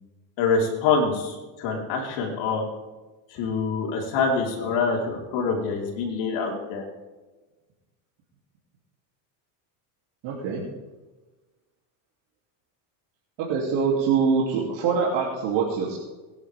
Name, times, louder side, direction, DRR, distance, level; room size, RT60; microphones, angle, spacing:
voice 1, 0.4-2.6 3.3-6.9, left 4 dB, 70° left, -1 dB, 4.4 m, -25 dB
voice 2, 10.2-10.6 13.4-16.0, right 5 dB, 65° right, -4 dB, 3.1 m, -24 dB
21.5 x 10.5 x 3.6 m, 1.2 s
supercardioid pair, 120°, 47 cm